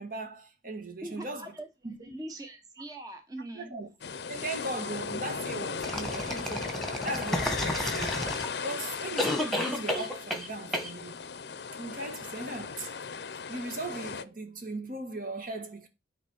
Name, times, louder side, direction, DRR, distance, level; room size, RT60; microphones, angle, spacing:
voice 1, 0.0-1.5 1.8-2.2 3.5-3.9 4.3-8.1 8.6-11.2 11.8-12.9 13.5-15.9, right 2 dB, 50° right, 1.6 m, -38 dB
voice 2, 1.0-1.7 2.0-3.7, right 1 dB, 20° right, 1.1 m, -42 dB
sound 1, 4.0-14.2, left 5 dB, 65° left, 0.6 m, -37 dB
sound 2, 5.8-8.7 9.2-10.5 10.7-10.9, left 1 dB, ahead, 1.7 m, -31 dB
10.0 x 4.1 x 6.4 m
head